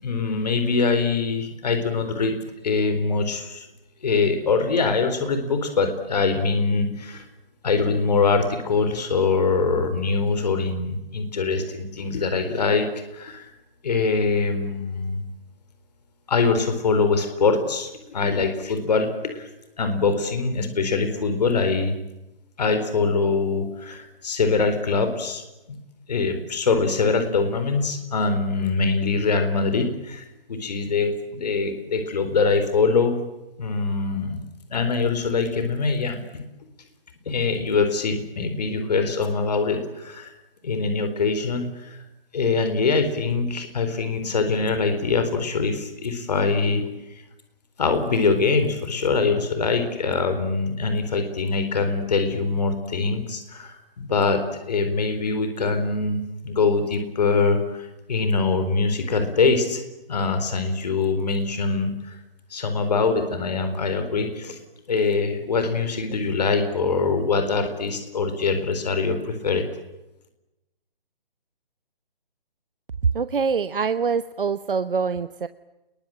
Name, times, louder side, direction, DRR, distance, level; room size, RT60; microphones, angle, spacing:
voice 1, 0.0-2.4 2.6-3.7 4.0-7.3 7.6-13.5 13.8-15.3 16.3-19.5 19.8-22.0 22.6-25.4 25.7-25.8 26.1-33.2 33.6-34.4 34.7-36.4 37.3-40.3 40.6-42.0 42.3-47.2 47.8-59.8 60.1-62.2 62.5-64.6 64.9-69.6, left 4 dB, 45° left, 8 dB, 4.2 m, -23 dB
voice 2, 73.1-75.5, right 5 dB, 65° right, 12 dB, 1.1 m, -25 dB
29.0 x 22.0 x 8.9 m, 0.99 s
hypercardioid pair, 165°, 29 cm